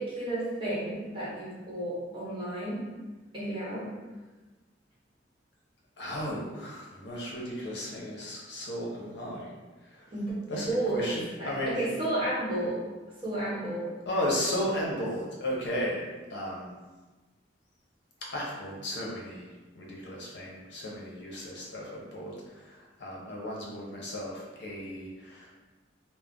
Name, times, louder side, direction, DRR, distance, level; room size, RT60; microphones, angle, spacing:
voice 1, 0.0-2.9 3.3-3.9 10.1-10.3 10.7-11.0 11.4-12.8 13.2-13.9, right 1 dB, 30° right, -8 dB, 1.0 m, -32 dB
voice 2, 6.0-10.1 10.5-11.8 14.1-16.8 18.3-19.5 19.7-25.5, equal, 65° left, -3 dB, 0.7 m, -35 dB
2.4 x 2.0 x 3.6 m, 1.2 s
head